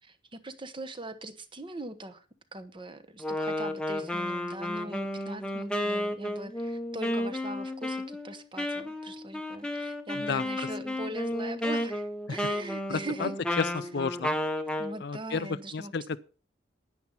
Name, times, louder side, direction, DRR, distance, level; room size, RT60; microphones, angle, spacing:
voice 1, 0.0-2.2 2.5-13.3 14.0-14.1 14.8-16.2, right 2 dB, 25° right, 1.0 m, -41 dB
Wind instrument woodwind instrument, 3.2-15.0, left 1 dB, 5° left, 0.9 m, -32 dB
voice 2, 10.1-10.7 12.3-12.4 12.9-13.3 13.6-14.3 15.0-16.2, left 5 dB, 55° left, 0.5 m, -32 dB
10.5 x 9.7 x 5.5 m
head